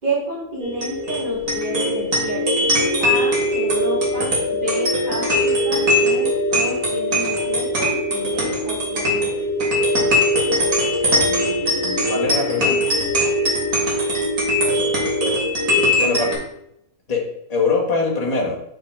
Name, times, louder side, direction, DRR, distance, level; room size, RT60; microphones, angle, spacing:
voice 1, 0.0-9.4 16.0-16.3, right 3 dB, 35° right, -6 dB, 2.6 m, -29 dB
sound 1, 0.6-16.3, left 1 dB, 65° right, 2.5 m, -20 dB
voice 2, 11.1-12.8 16.0-16.3 17.1-18.6, left 4 dB, 25° left, -3 dB, 1.6 m, -23 dB
5.8 x 5.5 x 4.6 m, 0.77 s
omnidirectional pair, 1.5 m